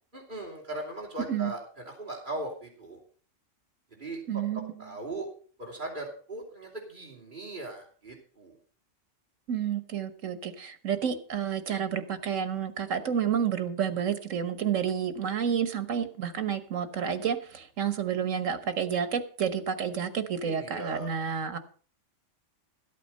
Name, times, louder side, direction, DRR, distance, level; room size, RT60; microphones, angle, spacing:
voice 1, 0.1-3.0 3.9-4.4 4.8-5.3 5.6-8.6 20.4-21.2, right 2 dB, 40° right, -2 dB, 3.0 m, -39 dB
voice 2, 4.3-4.9 9.5-21.6, right 8 dB, 85° right, 11 dB, 1.5 m, -30 dB
13.5 x 8.4 x 5.3 m, 0.42 s
omnidirectional pair, 1.3 m